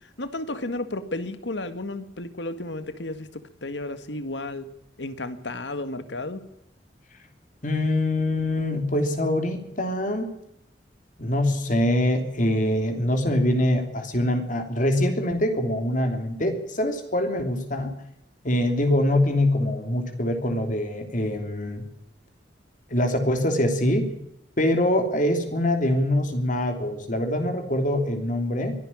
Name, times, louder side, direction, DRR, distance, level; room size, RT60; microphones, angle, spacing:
voice 1, 0.2-4.7 5.0-6.4, left 2 dB, 80° left, 11 dB, 1.9 m, -33 dB
voice 2, 7.6-10.3 11.2-17.9 18.4-21.8 22.9-24.1 24.6-28.7, left 1 dB, 45° left, 6 dB, 3.2 m, -24 dB
23.0 x 11.5 x 9.9 m, 0.81 s
head